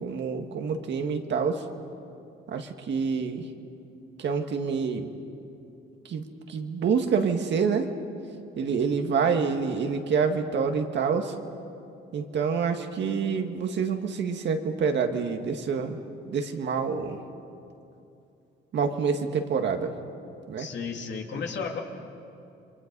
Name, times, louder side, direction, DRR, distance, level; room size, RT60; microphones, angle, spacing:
voice 1, 0.0-1.6 2.5-3.4 4.2-5.1 6.1-7.9 8.6-11.3 12.1-16.0 16.3-17.2 18.7-20.0 20.5-20.7, right 5 dB, 65° right, 5 dB, 1.9 m, -27 dB
voice 2, 20.6-21.8, left 5 dB, 65° left, 2 dB, 2.8 m, -34 dB
29.5 x 23.5 x 5.4 m, 2.7 s
cardioid pair, 90°, 20 cm